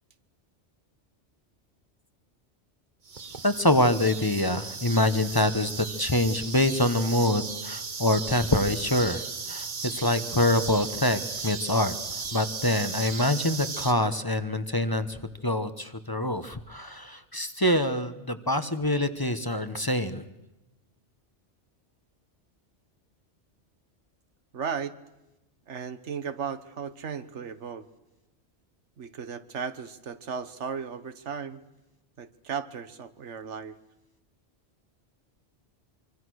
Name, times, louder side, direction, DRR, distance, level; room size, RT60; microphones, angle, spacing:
sound 1, 3.1-13.9, right 4 dB, 45° right, 1.3 m, -36 dB
voice 1, 3.4-9.2 9.5-20.3, left 1 dB, 20° left, 11 dB, 1.1 m, -25 dB
voice 2, 24.5-25.0 25.7-27.9 29.0-31.6 32.2-33.8, right 6 dB, 90° right, 12 dB, 1.5 m, -35 dB
25.0 x 24.5 x 6.4 m, 0.99 s
omnidirectional pair, 1.2 m